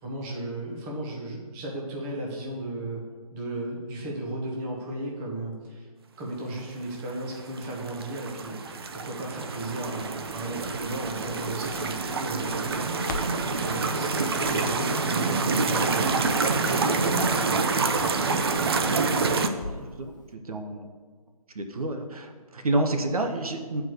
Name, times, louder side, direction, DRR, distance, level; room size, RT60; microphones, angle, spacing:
voice 1, 0.0-3.0 3.3-5.9 6.2-13.1 13.5-17.6 19.7-19.9, right 1 dB, 15° right, -3 dB, 1.2 m, -35 dB
sound 1, 7.4-19.5, right 4 dB, 40° right, 0.6 m, -27 dB
Crackle, 10.2-20.0 20.3-20.4, left 2 dB, 30° left, 0.7 m, -44 dB
voice 2, 19.7-20.1 20.5-20.8 21.5-23.8, right 2 dB, 65° right, 5 dB, 1.2 m, -29 dB
9.4 x 4.8 x 6.6 m, 1.5 s
hypercardioid pair, 165°, 20 cm